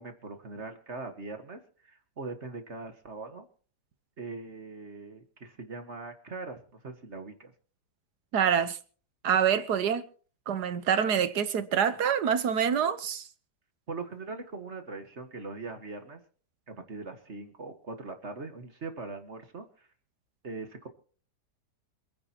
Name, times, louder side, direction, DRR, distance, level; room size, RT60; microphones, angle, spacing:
voice 1, 0.0-3.5 4.2-7.5 13.9-16.2 16.7-19.9 20.4-20.9, right 3 dB, 40° right, 1.8 m, -41 dB
voice 2, 8.3-8.8 9.2-10.0 10.5-13.3, right 8 dB, 70° right, 1.6 m, -26 dB
27.0 x 10.0 x 3.0 m
omnidirectional pair, 1.8 m